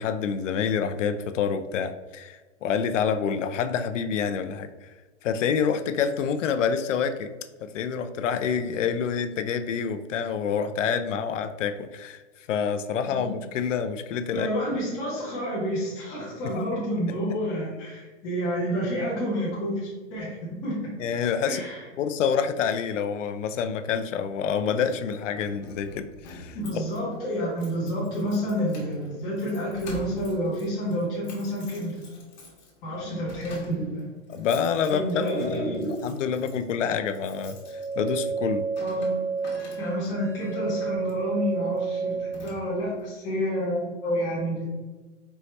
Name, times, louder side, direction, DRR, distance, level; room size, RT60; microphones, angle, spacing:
voice 1, 0.0-4.9 5.2-7.3 7.6-12.2 12.5-14.5 16.4-16.6 21.0-21.6 22.0-26.6 33.1-33.2 34.3-35.0 35.4-38.7, left 7 dB, 90° left, 8 dB, 0.5 m, -27 dB
voice 2, 14.3-20.8 21.4-21.8 26.5-32.0 32.8-34.1 34.9-36.0 38.8-39.2 39.8-44.7, equal, 10° left, -7 dB, 0.7 m, -29 dB
Keys jangling, 24.9-40.2 41.0-41.3 41.7-41.8 42.1-43.0, left 2 dB, 40° left, 1.2 m, -47 dB
sound 1, 37.6-42.5, right 5 dB, 50° right, 0.8 m, -30 dB
4.5 x 2.7 x 3.1 m, 1.3 s
hypercardioid pair, 175°, 36 cm